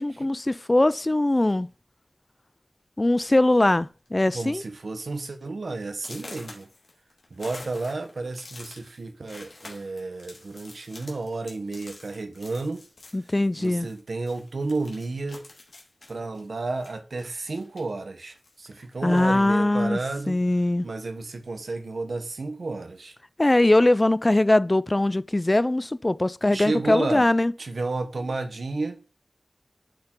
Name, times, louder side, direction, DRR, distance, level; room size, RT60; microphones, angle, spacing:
voice 1, 0.0-1.7 3.0-4.6 13.1-13.9 19.0-20.0 20.3-20.9 23.4-27.5, left 1 dB, 30° left, 0.4 m, -21 dB
sound 1, 1.4-1.7 2.6-2.7 3.0-3.3 3.6-4.1 4.5-4.6 5.1-5.2 5.9-14.0 14.3-18.0 18.4-19.4, left 2 dB, 85° left, 2.2 m, -47 dB
voice 2, 4.3-6.7 7.3-12.9 13.6-15.4 16.1-20.4 20.8-23.1 26.5-27.2 27.6-29.0, right 3 dB, 85° right, 0.9 m, -32 dB
10.5 x 3.7 x 4.4 m
wide cardioid pair, 60°, 0 cm